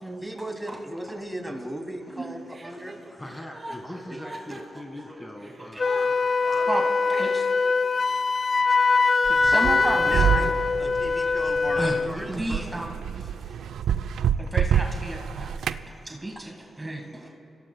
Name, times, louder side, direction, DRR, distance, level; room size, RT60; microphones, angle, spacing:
voice 1, 0.2-3.0 4.1-4.2 9.5-10.5 10.8-12.3 14.4-14.5 15.9-16.0, right 1 dB, 5° right, 2 dB, 2.8 m, -36 dB
Chuckle chortle, 2.5-7.7, right 1 dB, 40° right, 2.8 m, -43 dB
voice 2, 3.1-7.3 11.7-13.0, left 1 dB, 20° left, 3 dB, 1.6 m, -42 dB
Wind instrument woodwind instrument, 5.8-12.1, left 4 dB, 45° left, 0.3 m, -23 dB
voice 3, 9.3-10.5 11.8-11.9 12.3-12.9 13.2-13.3 14.5-15.5 16.0-17.3, right 2 dB, 25° right, 1 dB, 1.7 m, -32 dB
sound 1, 9.3-15.9, right 8 dB, 75° right, 0.4 m, -27 dB
28.0 x 16.0 x 2.3 m, 2.8 s
hypercardioid pair, 40°, 0 cm